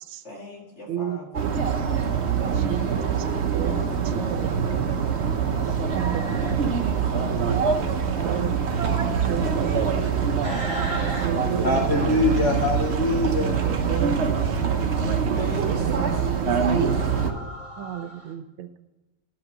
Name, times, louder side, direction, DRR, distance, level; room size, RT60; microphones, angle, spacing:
voice 1, 0.2-1.5 2.4-5.2 6.4-7.6 8.1-9.0 10.9-11.8 13.0-14.3 15.4-16.5, equal, 35° left, -1 dB, 2.1 m, -40 dB
voice 2, 0.9-1.2 2.5-2.9 3.2-3.3 3.5-3.8 4.1-4.6 5.9-6.8 8.2-8.6 8.8-9.0 9.3-10.0 11.2-11.8 13.6-14.2 14.5-14.7 15.6-16.1 17.8-18.8, right 10 dB, 80° right, 11 dB, 1.5 m, -33 dB
sound 1, 1.3-17.3, right 6 dB, 50° right, 0.8 m, -24 dB
sound 2, 4.5-10.6, right 2 dB, 5° left, 2.2 m, -41 dB
voice 3, 5.9-6.5 10.4-11.3 11.6-13.5 16.9-18.3, left 2 dB, 50° left, 1 dB, 0.9 m, -27 dB
11.0 x 5.9 x 7.3 m, 1.1 s
omnidirectional pair, 2.3 m